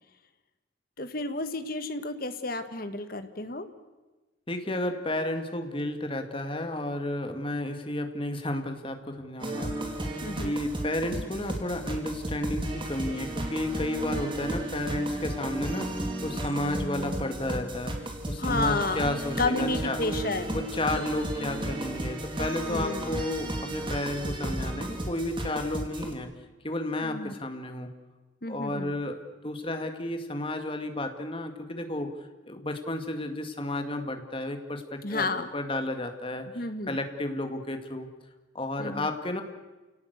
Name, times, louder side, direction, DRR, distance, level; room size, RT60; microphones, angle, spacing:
voice 1, 1.0-3.7 10.2-10.5 18.4-20.6 22.7-23.1 27.0-27.3 28.4-29.0 35.0-35.5 36.5-37.0 38.8-39.1, left 2 dB, 50° left, 9 dB, 1.7 m, -31 dB
voice 2, 4.5-9.8 10.4-20.0 20.5-26.3 26.6-27.9 28.5-35.3 35.5-38.1 38.5-39.4, left 1 dB, 25° left, 6 dB, 2.2 m, -32 dB
sound 1, 9.4-26.1, right 1 dB, 25° right, 2.9 m, -33 dB
29.5 x 18.0 x 8.2 m, 1.2 s
head